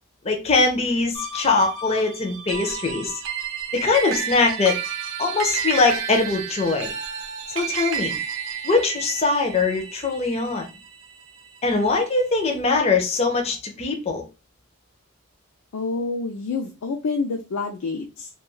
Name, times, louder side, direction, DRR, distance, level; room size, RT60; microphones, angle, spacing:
voice 1, 0.2-3.2 3.7-4.8 5.2-6.9 7.5-8.2 8.6-10.7 11.6-14.2, left 3 dB, 30° left, 3 dB, 0.4 m, -22 dB
sound 1, 1.1-11.8, right 7 dB, 70° right, 0.6 m, -31 dB
voice 2, 15.7-18.3, left 4 dB, 85° left, 3 dB, 0.4 m, -28 dB
2.3 x 2.3 x 3.0 m, 0.30 s
head